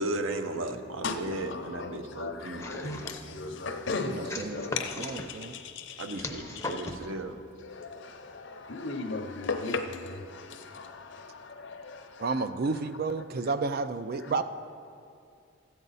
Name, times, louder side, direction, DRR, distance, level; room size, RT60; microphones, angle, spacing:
voice 1, 0.0-3.0 6.0-7.4, right 2 dB, 65° right, 0.7 m, -35 dB
voice 2, 1.0-6.9 7.6-12.5, left 3 dB, 55° left, 0.7 m, -37 dB
sound 1, 2.6-3.3 4.3-5.3 6.2-7.1, left 2 dB, 15° left, 0.6 m, -38 dB
voice 3, 4.1-5.5 12.2-14.4, right 4 dB, 45° right, 0.3 m, -31 dB
14.0 x 8.8 x 4.1 m
head